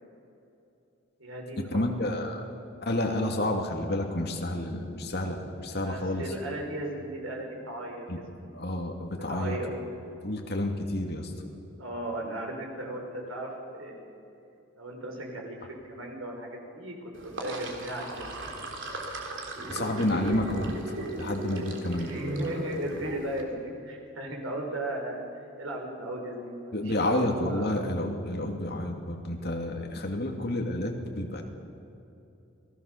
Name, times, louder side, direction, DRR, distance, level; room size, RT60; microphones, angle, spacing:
voice 1, 1.2-2.2 5.8-8.6 9.2-9.7 11.8-14.1 14.8-18.4 22.0-25.3 25.6-27.8, right 1 dB, 90° right, 1 dB, 5.5 m, -36 dB
voice 2, 1.7-2.4 2.9-6.3 8.1-8.2 8.5-9.6 10.2-11.3 19.7-20.8 21.2-22.2 26.7-31.4, left 1 dB, 50° left, 2 dB, 2.7 m, -30 dB
Sink (filling or washing), 17.1-23.4, right 2 dB, 65° right, 3.4 m, -37 dB
29.0 x 19.5 x 6.9 m, 2.8 s
head